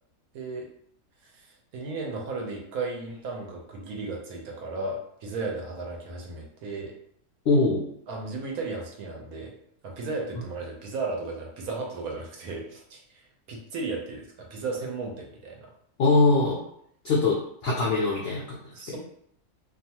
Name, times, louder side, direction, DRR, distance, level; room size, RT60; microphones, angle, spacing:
voice 1, 0.3-0.7 1.2-6.9 8.1-9.6 9.8-15.7 18.7-19.0, right 3 dB, 75° right, 0 dB, 1.0 m, -35 dB
voice 2, 7.5-7.9 16.0-16.6 17.0-17.4 17.6-18.6 18.9-19.0, left 3 dB, 70° left, -5 dB, 0.5 m, -22 dB
2.7 x 2.3 x 2.8 m, 0.69 s
omnidirectional pair, 1.6 m